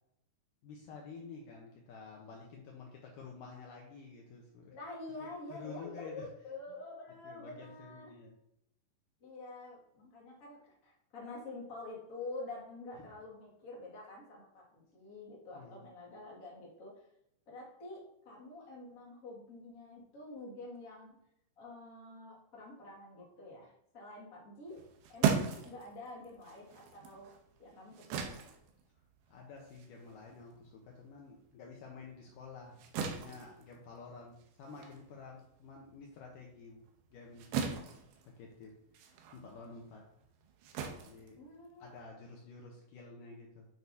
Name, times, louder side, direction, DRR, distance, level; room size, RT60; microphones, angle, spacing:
voice 1, 0.6-4.8 5.2-6.3 7.2-8.3 15.5-15.8 29.3-36.8 37.1-37.8 38.4-40.0 41.0-41.4 41.8-43.7, left 4 dB, 90° left, -1 dB, 1.9 m, -51 dB
voice 2, 4.7-8.1 9.2-17.1 17.5-21.2 21.6-24.8 25.1-27.3 27.6-28.2 41.4-41.9, left 2 dB, 40° left, -4 dB, 1.3 m, -47 dB
sound 1, 24.7-31.5 31.8-42.1, right 6 dB, 85° right, 3.1 m, -39 dB
8.6 x 6.2 x 2.7 m, 0.79 s
omnidirectional pair, 5.0 m